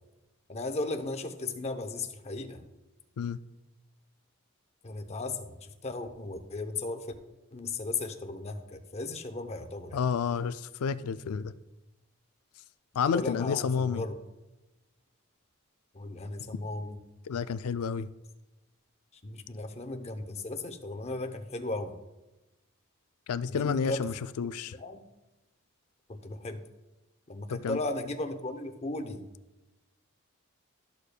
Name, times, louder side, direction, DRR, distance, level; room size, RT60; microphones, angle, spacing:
voice 1, 0.5-2.6 4.8-7.1 7.5-10.0 13.1-14.1 15.9-17.0 19.1-21.9 23.5-24.1 24.7-25.0 26.1-26.6 27.3-29.3, left 2 dB, 30° left, 0.6 m, -36 dB
voice 2, 9.9-11.5 13.0-14.0 17.3-18.1 23.3-24.7 27.5-27.8, left 6 dB, 75° left, 0.4 m, -30 dB
13.0 x 6.7 x 2.2 m
head